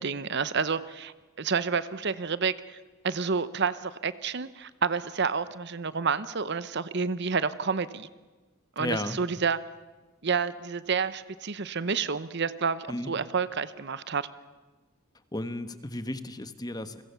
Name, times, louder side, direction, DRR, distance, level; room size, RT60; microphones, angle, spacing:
voice 1, 0.0-2.8 3.0-8.1 8.8-9.6 10.2-14.3, right 5 dB, 55° right, 15 dB, 0.8 m, -29 dB
voice 2, 8.8-9.2 12.9-13.1 15.3-17.0, left 1 dB, 20° left, 11 dB, 1.3 m, -34 dB
30.0 x 22.5 x 7.0 m, 1.2 s
head